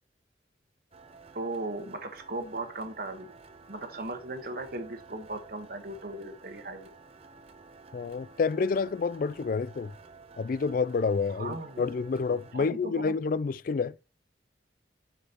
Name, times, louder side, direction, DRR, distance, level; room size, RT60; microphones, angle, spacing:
sound 1, 0.9-12.5, right 4 dB, 30° right, 0.6 m, -52 dB
voice 1, 1.3-3.3 3.7-6.9 11.3-11.9 12.5-13.2, right 2 dB, 50° right, 1.2 m, -37 dB
voice 2, 7.9-9.9 10.4-13.9, left 4 dB, 45° left, 0.3 m, -29 dB
11.0 x 5.0 x 2.9 m
head